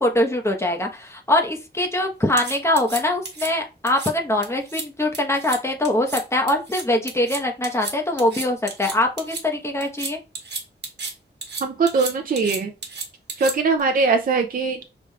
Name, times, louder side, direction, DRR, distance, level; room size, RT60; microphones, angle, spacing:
voice 1, 0.0-10.2, left 1 dB, 15° left, 2 dB, 1.0 m, -23 dB
sound 1, 2.4-3.5 3.9-4.1 4.4-4.9 5.1-5.6 5.9-6.2 6.5-9.4 9.8-11.1 11.4-13.8, right 4 dB, 70° right, 1.2 m, -32 dB
voice 2, 11.6-12.7 13.4-14.8, right 4 dB, 50° right, 4 dB, 0.5 m, -21 dB
5.9 x 3.5 x 2.3 m, 0.29 s
wide cardioid pair, 100°, 18 cm